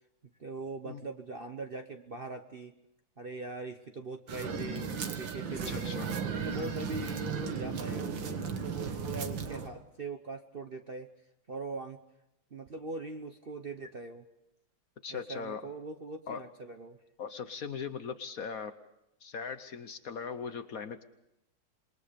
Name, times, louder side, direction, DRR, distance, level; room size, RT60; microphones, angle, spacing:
voice 1, 0.4-2.7 3.2-6.0 6.3-11.1 11.5-12.0 12.5-14.3 15.1-17.0, right 3 dB, 40° right, 6 dB, 0.9 m, -41 dB
sound 1, 4.3-9.7, right 6 dB, 80° right, 2.3 m, -35 dB
voice 2, 5.7-6.1 6.6-6.9 15.0-15.7 16.3-16.4 17.2-18.8 19.2-21.0, left 6 dB, 55° left, 10 dB, 1.2 m, -39 dB
27.0 x 22.0 x 5.1 m, 0.84 s
omnidirectional pair, 2.1 m